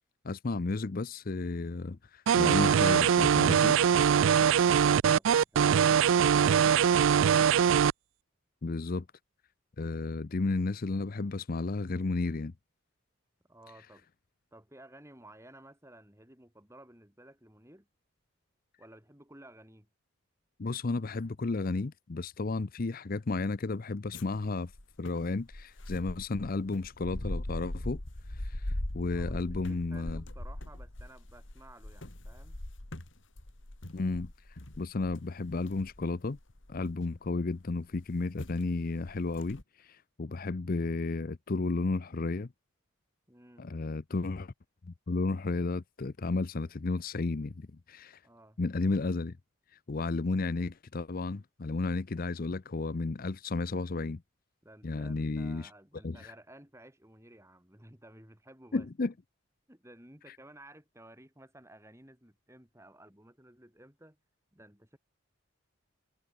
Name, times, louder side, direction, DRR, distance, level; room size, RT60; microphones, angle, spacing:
voice 1, 0.2-3.8 8.6-9.1 9.8-12.5 20.6-24.7 25.0-28.0 28.3-30.2 33.9-36.4 36.7-42.5 43.6-44.5 44.8-48.2 48.6-49.4 49.9-54.2 54.8-55.7 56.0-56.3 58.7-59.1, left 3 dB, 40° left, 0.6 m, -33 dB
sound 1, 2.3-7.9, right 8 dB, 65° right, 0.3 m, -22 dB
voice 2, 13.5-14.1 14.5-17.9 18.8-19.9 29.1-32.6 43.3-43.7 48.2-48.6 54.6-58.9 59.7-64.2 64.5-65.0, right 1 dB, 15° right, 4.3 m, -55 dB
sound 2, 24.1-37.3 38.0-38.1 38.4-38.6 39.0-39.6, left 1 dB, 60° left, 2.3 m, -40 dB
head